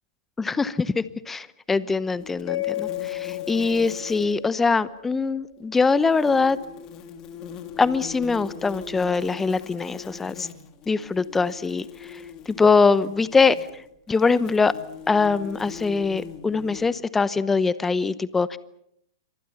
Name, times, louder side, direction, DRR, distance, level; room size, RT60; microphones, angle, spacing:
voice 1, 0.4-6.6 7.8-10.5 10.9-12.2 12.5-13.6 14.1-14.7 15.1-18.6, left 4 dB, 10° left, 18 dB, 0.9 m, -22 dB
sound 1, 2.2-4.4 5.8-16.9, left 7 dB, 30° left, 3.2 m, -41 dB
Mallet percussion, 2.5-5.5, left 16 dB, 45° left, 7.2 m, -33 dB
29.0 x 26.0 x 5.8 m, 0.75 s
figure-of-eight pair, 105°, 2 cm